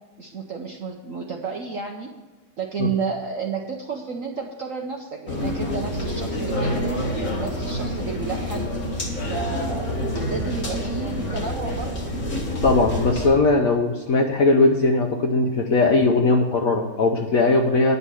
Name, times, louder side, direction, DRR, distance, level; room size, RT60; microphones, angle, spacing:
voice 1, 0.2-2.1 2.6-7.0 7.4-8.7 9.3-12.0, right 5 dB, 60° right, 1 dB, 0.8 m, -31 dB
sound 1, 5.3-13.3, equal, 40° left, 2.3 m, -27 dB
voice 2, 12.6-18.0, left 3 dB, 60° left, 3 dB, 0.9 m, -19 dB
9.9 x 5.5 x 8.2 m, 1.2 s
omnidirectional pair, 2.2 m